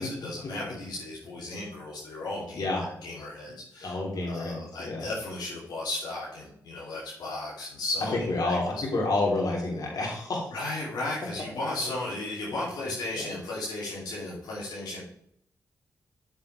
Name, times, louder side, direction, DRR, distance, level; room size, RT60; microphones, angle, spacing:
voice 1, 0.0-4.0 4.3-8.8 10.5-15.0, left 2 dB, 85° left, -7 dB, 2.8 m, -35 dB
voice 2, 3.8-5.0 8.3-10.4, left 2 dB, 65° left, -2 dB, 3.4 m, -29 dB
8.3 x 7.4 x 3.3 m, 0.69 s
supercardioid pair, 45°, 7 cm